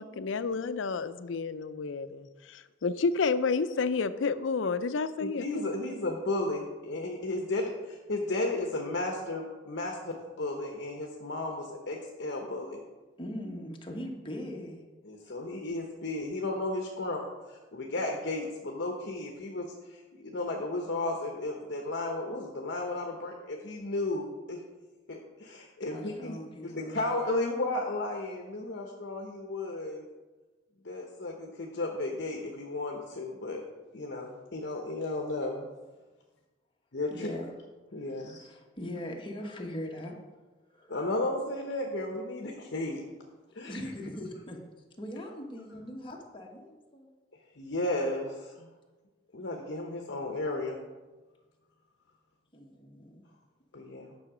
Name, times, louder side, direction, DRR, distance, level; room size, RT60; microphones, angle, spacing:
voice 1, 0.0-5.4, left 4 dB, 80° left, 13 dB, 0.5 m, -30 dB
voice 2, 5.2-12.8 15.0-24.6 25.1-26.4 26.6-30.1 30.8-33.6 33.9-35.7 36.9-37.3 37.9-38.5 40.9-43.0 43.5-43.8 47.5-48.7 49.3-50.8 53.7-54.1, left 2 dB, 60° left, 1 dB, 0.9 m, -34 dB
voice 3, 13.2-14.8 25.9-27.0 37.1-37.4 38.1-40.2 40.7-40.9 43.7-44.6 45.0-47.1 52.5-53.2, left 1 dB, 25° left, 0 dB, 1.3 m, -40 dB
9.7 x 6.3 x 4.9 m, 1.2 s
head